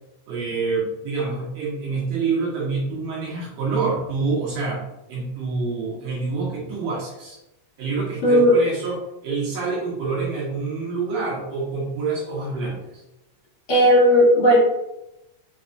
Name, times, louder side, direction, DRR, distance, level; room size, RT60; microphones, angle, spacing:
voice 1, 0.3-4.8 5.1-7.4 7.8-13.0, right 4 dB, 70° right, -5 dB, 2.1 m, -27 dB
voice 2, 13.7-14.6, equal, 65° left, -7 dB, 2.8 m, -15 dB
5.4 x 3.0 x 2.5 m, 0.93 s
omnidirectional pair, 3.3 m